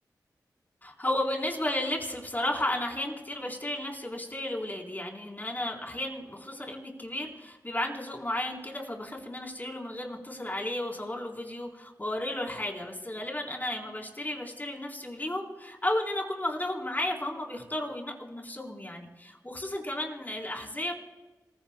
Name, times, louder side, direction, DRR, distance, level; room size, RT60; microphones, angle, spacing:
voice 1, 0.8-20.9, left 1 dB, 25° left, 0 dB, 4.1 m, -33 dB
27.0 x 15.0 x 2.3 m, 1.2 s
cardioid pair, 45°, 7 cm